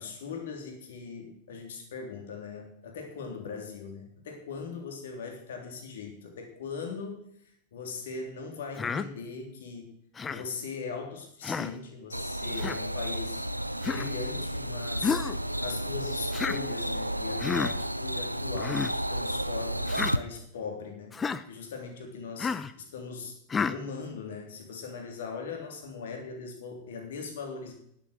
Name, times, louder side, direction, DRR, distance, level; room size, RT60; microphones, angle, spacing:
voice 1, 0.0-7.2 7.7-9.9 10.3-13.4 13.8-15.3 15.6-21.2 21.5-23.3 23.6-27.7, left 5 dB, 60° left, 2 dB, 3.2 m, -40 dB
Human voice, 8.8-9.1 10.2-10.4 11.4-11.7 12.6-12.8 13.8-14.1 15.0-15.4 16.3-16.6 17.4-17.7 18.5-18.9 19.9-20.1 21.1-21.4 22.4-22.7 23.5-23.8, left 5 dB, 20° left, 0.7 m, -30 dB
sound 1, 12.1-20.2, right 1 dB, 90° right, 0.5 m, -32 dB
11.0 x 9.2 x 6.6 m, 0.71 s
figure-of-eight pair, 90°, 0 cm